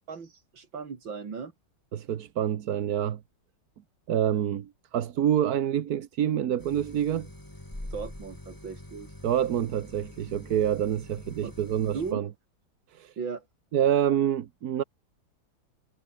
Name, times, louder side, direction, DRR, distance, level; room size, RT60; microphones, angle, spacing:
voice 1, 0.1-1.5 7.9-9.1 11.4-11.5 11.8-12.2 13.2-13.5, right 5 dB, 85° right, 3.5 m, -37 dB
voice 2, 1.9-3.2 4.1-7.3 9.2-12.3 12.9-13.1 13.7-14.8, right 10 dB, 60° right, 1.4 m, -27 dB
sound 1, 6.6-12.1, left 1 dB, 10° left, 3.1 m, -44 dB
omnidirectional pair, 2.0 m